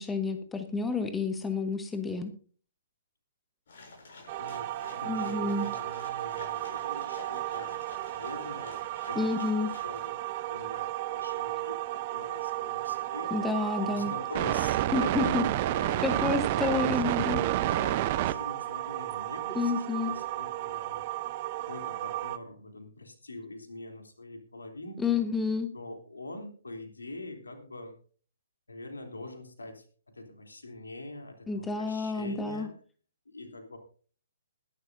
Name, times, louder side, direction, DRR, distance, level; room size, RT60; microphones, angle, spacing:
voice 1, 0.0-2.3 5.1-5.7 9.2-9.7 13.3-14.1 14.9-15.4 16.0-17.4 19.5-20.1 25.0-25.7 31.5-32.7, left 4 dB, 5° left, 8 dB, 1.0 m, -29 dB
sound 1, 3.7-10.1, left 3 dB, 50° left, 6.8 m, -50 dB
sound 2, 4.3-22.4, right 15 dB, 35° right, 0.7 m, -32 dB
voice 2, 4.4-9.5 9.8-13.3 13.8-16.1 16.6-17.0 17.5-21.0 21.6-25.2 25.7-28.0 28.7-32.7 33.2-33.8, left 2 dB, 70° left, 4 dB, 3.2 m, -44 dB
21.0 x 11.0 x 2.7 m, 0.43 s
figure-of-eight pair, 125°, 0 cm